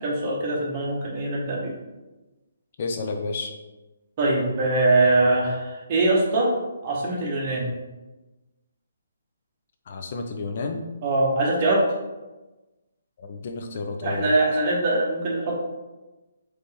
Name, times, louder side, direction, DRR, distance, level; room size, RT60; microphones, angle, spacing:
voice 1, 0.0-1.7 4.2-6.5 6.8-7.7 11.0-11.8 14.0-15.6, right 2 dB, 35° right, -3 dB, 1.3 m, -22 dB
voice 2, 2.8-3.5 9.9-10.9 13.2-14.4, left 3 dB, 50° left, 4 dB, 0.5 m, -31 dB
4.1 x 3.3 x 3.5 m, 1.1 s
hypercardioid pair, 155°, 0 cm